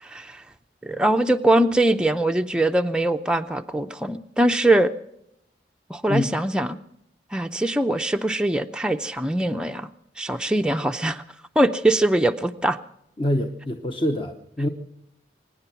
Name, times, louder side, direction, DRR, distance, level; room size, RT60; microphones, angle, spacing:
voice 1, 0.0-0.4 0.8-4.9 5.9-6.8 7.3-9.9 10.2-11.2 11.6-12.8, right 1 dB, 5° right, 6 dB, 0.5 m, -22 dB
voice 2, 13.2-14.7, left 1 dB, 30° left, 5 dB, 0.9 m, -25 dB
24.0 x 10.0 x 5.9 m, 0.79 s
head